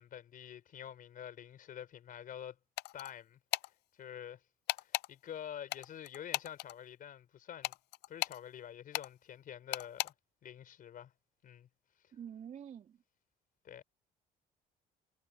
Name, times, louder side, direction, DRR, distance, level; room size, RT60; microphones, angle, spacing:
voice 1, 0.0-2.6 2.9-3.4 4.0-4.4 4.8-7.7 8.1-10.1 10.4-11.1 11.4-11.7 13.6-13.8, left 10 dB, 55° left, 5.1 m, -47 dB
sound 1, 2.8-3.1 3.5-3.7 4.7-5.1 5.7-6.7 7.6-8.4 8.9-9.1 9.7-10.1, left 20 dB, 80° left, 0.5 m, -36 dB
voice 2, 12.1-13.0, right 8 dB, 50° right, 3.1 m, -47 dB
cardioid pair, 110°, 17 cm